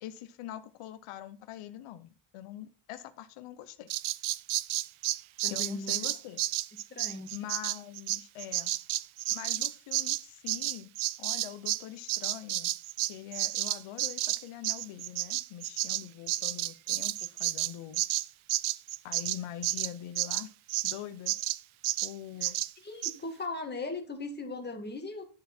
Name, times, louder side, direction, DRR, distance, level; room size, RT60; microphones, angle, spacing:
voice 1, 0.0-3.9 5.5-6.4 7.3-8.7 9.3-10.9 11.2-12.7 13.0-18.0 19.0-20.5 20.8-21.3 22.0-22.6, left 12 dB, 80° left, 11 dB, 1.0 m, -43 dB
Bird vocalization bird call bird song, 3.9-11.8 12.1-21.0 21.3-21.6 21.8-22.1 22.4-22.7 23.0-23.1, right 16 dB, 70° right, 0.6 m, -31 dB
voice 2, 5.4-6.0 6.9-7.3 22.4-22.5 22.8-25.3, left 2 dB, 20° left, 3 dB, 2.1 m, -38 dB
11.0 x 7.0 x 4.4 m, 0.36 s
cardioid pair, 145°, 50 cm